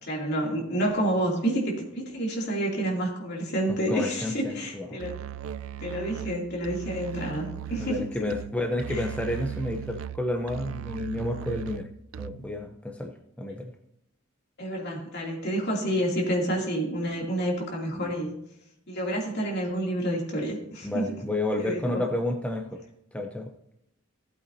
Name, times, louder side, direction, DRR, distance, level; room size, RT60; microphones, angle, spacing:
voice 1, 0.0-5.2 5.8-8.1 8.9-9.0 14.6-18.3 18.9-21.0 21.6-22.0, right 1 dB, 55° left, -2 dB, 2.8 m, -29 dB
voice 2, 3.7-5.0 7.8-11.9 12.2-13.7 17.9-18.1 20.8-22.8 23.1-23.5, left 1 dB, 5° left, 2 dB, 0.7 m, -31 dB
Musical instrument, 5.0-12.6, right 10 dB, 85° right, 0.3 m, -38 dB
16.5 x 8.3 x 2.8 m, 0.79 s
head